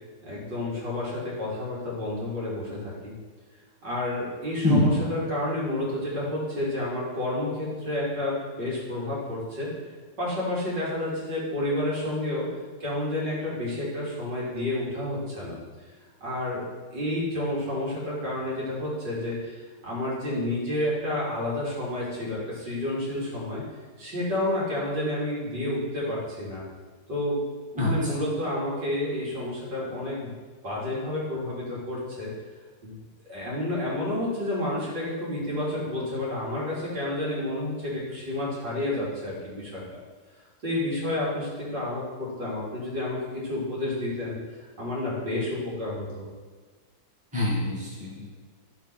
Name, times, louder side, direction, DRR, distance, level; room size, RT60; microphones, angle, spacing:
voice 1, 0.2-3.1 3.8-9.7 10.2-12.5 12.8-15.6 16.2-16.6 16.9-23.6 24.0-26.6 27.1-27.4 27.7-30.3 30.6-32.3 32.8-33.0 33.3-39.8 40.6-46.3, left 1 dB, 65° right, -7 dB, 3.5 m, -30 dB
voice 2, 4.6-5.0 27.8-27.9 47.3-48.3, left 1 dB, 5° right, -7 dB, 2.2 m, -24 dB
12.0 x 4.1 x 5.9 m, 1.4 s
omnidirectional pair, 2.1 m